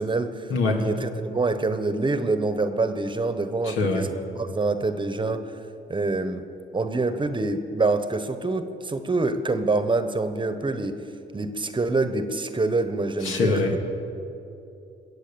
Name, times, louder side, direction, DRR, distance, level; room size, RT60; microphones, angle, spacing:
voice 1, 0.0-4.1 4.3-5.5 5.9-6.4 6.7-11.0 11.3-13.8, right 3 dB, 25° right, 10 dB, 1.0 m, -26 dB
voice 2, 3.6-4.1 13.2-13.8, left 3 dB, 90° left, 1 dB, 2.1 m, -23 dB
22.0 x 8.1 x 6.8 m, 2.8 s
cardioid pair, 90°, 20 cm